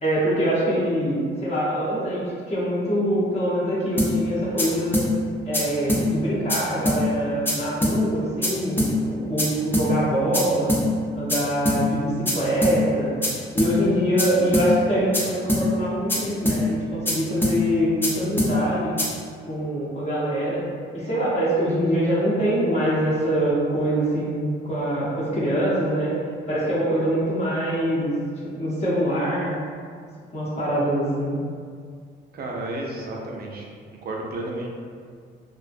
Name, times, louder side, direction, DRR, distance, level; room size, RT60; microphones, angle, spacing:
voice 1, 0.0-5.0 5.4-10.7 11.1-13.1 13.5-18.9 19.5-20.6 20.9-26.1 26.5-28.1 28.4-29.6 30.3-31.4, equal, 35° left, -9 dB, 0.8 m, -24 dB
sound 1, 4.0-4.1 4.6-4.7 4.9-5.1 5.5-5.6 5.9-6.0 6.5-6.6 6.9-7.0 7.5-7.6 7.8-8.0 8.4-8.5 8.8-8.9 9.4-9.5 9.7-9.9 10.3-10.4 10.7-10.8 11.3-11.4 11.7-11.8 12.3-12.4 12.6-12.8 13.2-13.3 13.6-13.7 14.2-14.3 14.5-14.7 15.1-15.2 15.5-15.6 16.1-16.2 16.5-16.6 17.1-17.2 17.4-17.6 18.0-18.1 18.4-18.5 19.0-19.1, equal, 10° left, 0.5 m, -22 dB
voice 2, 32.3-33.7 34.0-34.7, right 2 dB, 50° right, -1 dB, 0.5 m, -32 dB
2.4 x 2.0 x 2.4 m, 2.1 s
cardioid pair, 90°, 20 cm